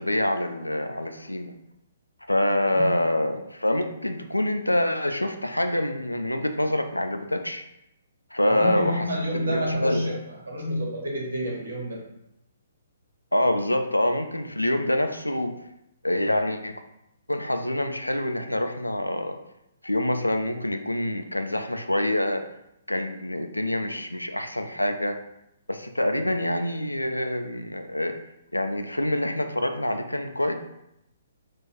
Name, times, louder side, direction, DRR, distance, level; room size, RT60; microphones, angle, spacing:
voice 1, 0.0-1.5 2.3-7.6 8.3-9.1 9.3-10.1 13.3-15.6 16.0-16.8 17.3-19.4 19.8-22.4 22.9-25.2 25.7-28.1 28.5-30.5, left 1 dB, 85° left, 6 dB, 0.4 m, -26 dB
voice 2, 8.5-10.1 10.4-12.0, equal, 65° right, -2 dB, 1.4 m, -28 dB
3.8 x 2.5 x 4.3 m, 0.82 s
figure-of-eight pair, 125°, 0 cm